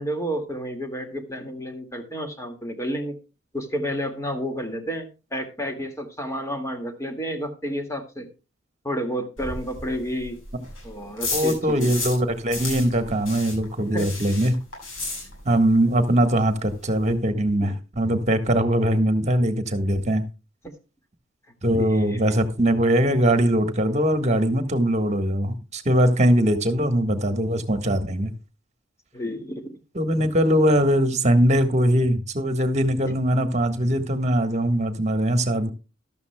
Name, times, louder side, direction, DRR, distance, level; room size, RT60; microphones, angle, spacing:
voice 1, 0.0-3.2 3.5-8.3 8.8-10.4 10.8-12.0 13.9-14.1 17.6-17.7 21.7-22.4 29.1-29.8, equal, 15° left, 2.1 m, -31 dB
sound 1, 9.4-12.2 12.5-15.7 16.0-16.1 16.4-16.5 16.7-17.1, left 3 dB, 80° left, 7.6 m, -33 dB
voice 2, 11.3-14.5 15.4-20.2 21.6-28.3 29.9-35.7, right 1 dB, 35° right, 1.6 m, -21 dB
14.0 x 12.5 x 2.3 m
head